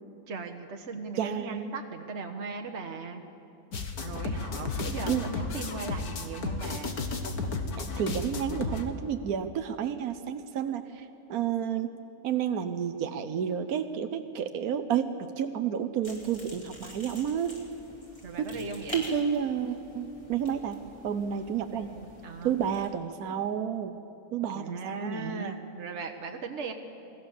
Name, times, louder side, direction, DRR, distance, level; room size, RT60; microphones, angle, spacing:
voice 1, 0.3-3.2 4.0-6.9 18.2-19.0 21.7-22.6 24.5-26.7, right 4 dB, 50° right, 3 dB, 1.5 m, -38 dB
voice 2, 1.2-1.7 5.0-5.2 7.8-11.9 12.2-17.6 18.4-18.5 18.9-20.8 21.0-21.9 22.4-24.0 24.3-25.6, right 8 dB, 75° right, 7 dB, 1.4 m, -31 dB
sound 1, 3.7-8.8, left 3 dB, 80° left, 2.1 m, -33 dB
sound 2, 16.0-22.9, equal, 20° left, 4.7 m, -47 dB
28.5 x 19.5 x 7.3 m, 2.8 s
omnidirectional pair, 1.6 m